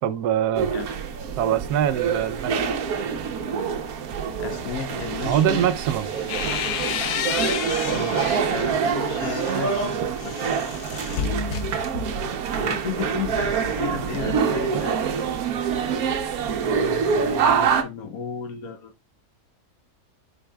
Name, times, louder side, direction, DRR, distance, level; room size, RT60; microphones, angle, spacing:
voice 1, 0.0-0.7 1.4-2.7 5.2-6.1, right 10 dB, 90° right, 1.2 m, -23 dB
sound 1, 0.5-17.8, right 6 dB, 70° right, 1.3 m, -26 dB
voice 2, 4.4-5.7 7.9-10.6 12.5-15.0 16.7-18.9, left 7 dB, 70° left, 1.3 m, -34 dB
sound 2, 5.9-8.5 9.0-12.3, left 9 dB, 90° left, 1.2 m, -31 dB
9.9 x 4.7 x 2.3 m
omnidirectional pair, 1.6 m